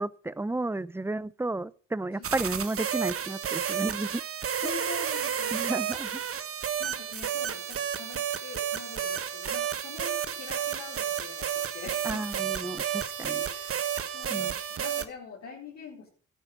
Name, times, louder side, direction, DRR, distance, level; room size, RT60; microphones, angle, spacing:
voice 1, 0.0-4.2 5.5-6.1 12.0-13.4 14.3-14.5, right 2 dB, 10° right, 0.6 m, -32 dB
sound 1, 2.2-15.0, right 9 dB, 50° right, 1.4 m, -31 dB
voice 2, 4.6-5.8 6.8-12.3 13.4-13.9 14.1-16.1, left 5 dB, 65° left, 4.5 m, -44 dB
13.0 x 10.0 x 6.7 m
cardioid pair, 90°, 30 cm